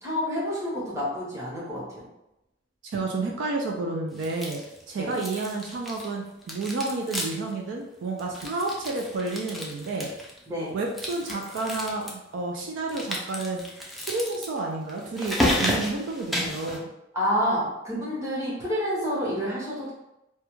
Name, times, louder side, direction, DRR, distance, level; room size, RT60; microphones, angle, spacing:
voice 1, 0.0-2.0 5.0-5.2 10.5-10.8 17.1-19.9, equal, 15° right, -7 dB, 0.9 m, -28 dB
voice 2, 2.8-4.6 4.9-10.1 10.7-13.6 14.1-16.9, right 3 dB, 70° right, 0 dB, 0.4 m, -30 dB
sound 1, 4.2-4.8 5.1-6.1 6.4-7.5 7.8-7.9 8.2-10.4 10.9-12.1 12.9-16.8, left 1 dB, ahead, 0.4 m, -31 dB
2.3 x 2.1 x 3.0 m, 0.87 s
head